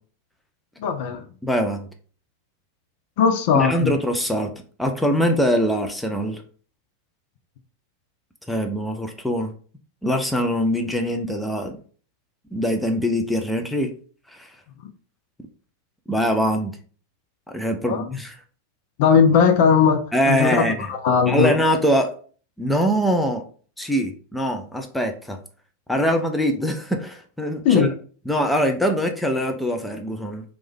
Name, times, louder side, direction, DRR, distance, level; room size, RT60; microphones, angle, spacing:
voice 1, 0.8-1.2 3.2-3.9 17.9-18.1 19.0-20.6 20.9-21.6 27.6-27.9, left 6 dB, 50° left, 7 dB, 0.5 m, -18 dB
voice 2, 1.4-1.8 3.5-4.5 4.8-6.4 8.5-9.5 10.0-11.8 12.5-13.9 14.3-14.5 16.1-16.8 17.5-18.4 20.1-20.9 21.3-22.1 22.6-23.4 23.8-25.4 25.9-27.9 28.3-30.4, equal, 5° left, 3 dB, 0.5 m, -23 dB
3.2 x 2.6 x 3.5 m, 0.42 s
figure-of-eight pair, 90°, 0 cm